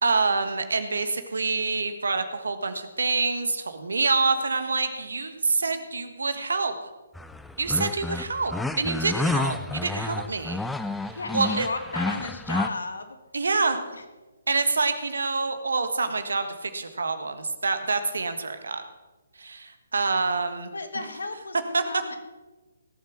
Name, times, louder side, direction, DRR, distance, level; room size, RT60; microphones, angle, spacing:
voice 1, 0.0-6.7 7.6-10.6 11.3-11.7 13.3-13.8 14.5-18.8 19.4-21.1 21.7-22.0, right 4 dB, 70° right, 9 dB, 1.5 m, -26 dB
sound 1, 7.1-12.7, left 2 dB, 5° left, 0.5 m, -30 dB
voice 2, 11.1-13.2 13.9-14.0 20.7-22.2, left 3 dB, 75° left, 9 dB, 1.7 m, -34 dB
17.5 x 7.9 x 6.3 m, 1.2 s
figure-of-eight pair, 140°, 0 cm